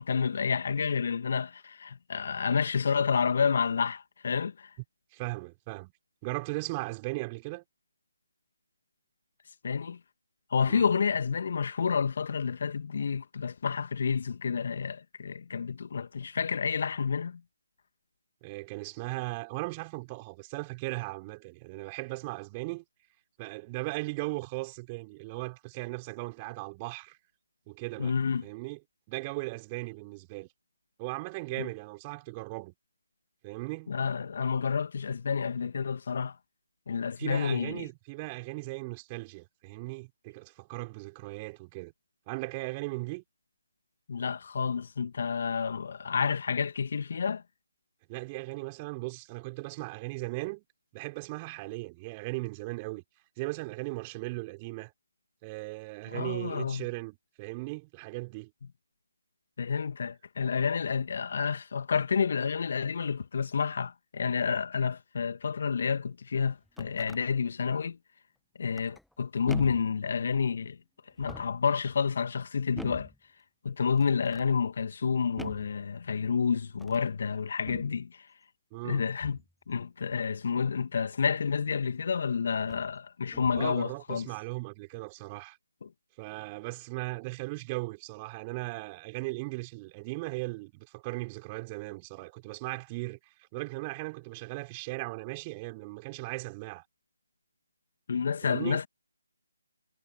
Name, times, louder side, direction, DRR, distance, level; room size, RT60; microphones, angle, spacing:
voice 1, 0.0-4.7 9.6-10.0 10.5-17.4 28.0-28.4 31.6-31.7 33.9-36.4 36.9-37.9 44.1-47.4 56.1-56.8 59.6-68.0 68.6-70.8 71.2-73.1 73.6-78.3 78.8-79.4 79.7-84.3 85.8-85.9 98.1-98.9, left 6 dB, 50° left, 2.2 m, -29 dB
voice 2, 5.1-5.9 6.2-7.6 10.7-10.9 18.4-22.8 23.4-27.2 27.7-28.1 28.4-28.8 29.1-30.5 31.0-32.7 33.4-34.0 37.2-41.9 42.3-43.2 48.1-50.6 50.9-53.0 53.4-54.9 55.4-58.5 78.7-79.0 83.6-85.6 86.2-96.8 98.4-98.8, right 25 dB, 20° right, 6.3 m, -37 dB
sound 1, 66.6-67.2 68.7-69.1 69.5-70.0 71.1-71.7 72.8-73.2 74.0-74.5 75.4-75.8 76.7-77.1 77.7-78.0 79.2-79.5 81.6-81.7 82.6-82.9 83.3-83.7, left 1 dB, ahead, 1.1 m, -44 dB
figure-of-eight pair, 150°, 0 cm